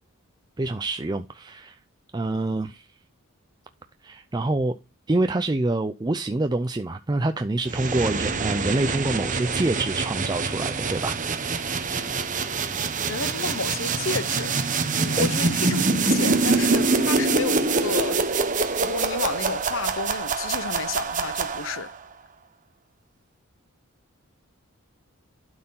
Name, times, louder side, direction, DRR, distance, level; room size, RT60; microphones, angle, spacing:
voice 1, 0.6-1.8 2.1-2.9 4.0-4.8 5.1-11.2 15.2-15.3, right 2 dB, 20° right, 0.4 m, -26 dB
sound 1, 7.7-22.0, right 4 dB, 35° right, 1.0 m, -25 dB
voice 2, 13.1-14.6 15.0-18.2 18.7-21.9, left 4 dB, 60° left, 0.7 m, -31 dB
12.0 x 4.4 x 5.5 m
head